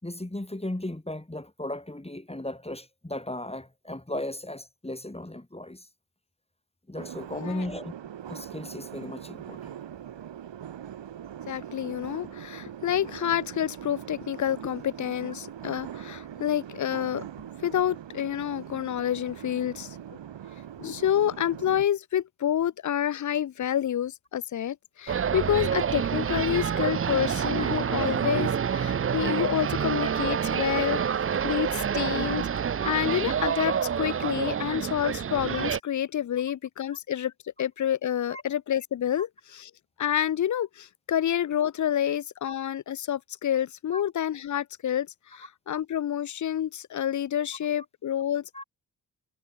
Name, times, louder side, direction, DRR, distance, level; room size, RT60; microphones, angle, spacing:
voice 1, 0.0-5.9 6.9-7.9 8.3-9.7 27.6-27.7 30.0-30.1 31.3-31.4 38.3-38.4 42.4-42.5 43.9-44.0 48.5-48.6, left 1 dB, 15° left, 4.8 m, -36 dB
sound 1, 7.0-21.8, right 10 dB, 80° right, 6.5 m, -42 dB
voice 2, 7.3-7.6 11.5-17.3 17.6-20.0 20.8-37.3 37.6-39.7 40.0-48.6, left 10 dB, 45° left, 0.5 m, -28 dB
sound 2, 25.1-35.8, right 7 dB, 30° right, 0.5 m, -27 dB
supercardioid pair, 45°, 43 cm